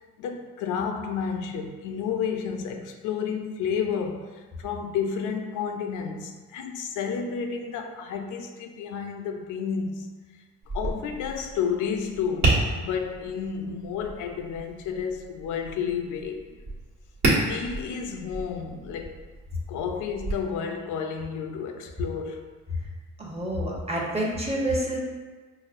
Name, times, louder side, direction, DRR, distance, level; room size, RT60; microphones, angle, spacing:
voice 1, 0.2-10.1 10.7-16.5 17.5-19.2 19.7-22.4, left 6 dB, 85° left, 5 dB, 0.5 m, -31 dB
Tap, 10.6-20.3, right 2 dB, 65° right, 1.3 m, -31 dB
voice 2, 23.2-25.0, right 1 dB, 20° right, -3 dB, 0.9 m, -28 dB
5.4 x 2.1 x 2.5 m, 1.4 s
cardioid pair, 90°, 30 cm